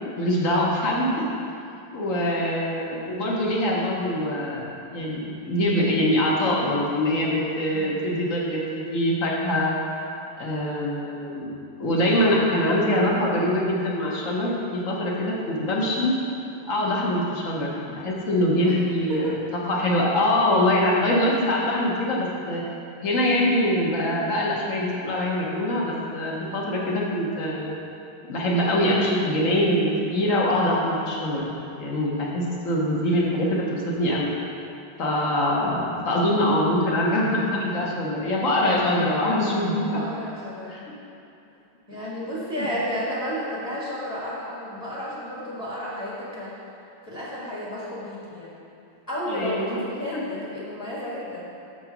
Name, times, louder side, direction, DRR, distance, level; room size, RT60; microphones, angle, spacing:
voice 1, 0.2-1.2 1.9-9.7 10.4-11.5 11.8-16.1 16.7-17.7 18.0-19.3 19.7-22.6 23.0-27.7 28.3-31.4 31.8-34.3 35.0-39.9 40.7-40.8 41.9-42.1 42.6-42.7 49.3-49.8 50.1-50.2, left 1 dB, 45° left, -3 dB, 1.1 m, -23 dB
voice 2, 39.6-40.8 41.9-46.6 47.1-48.5 49.1-51.5, equal, 10° left, -8 dB, 1.2 m, -32 dB
6.9 x 4.9 x 5.8 m, 2.8 s
omnidirectional pair, 2.3 m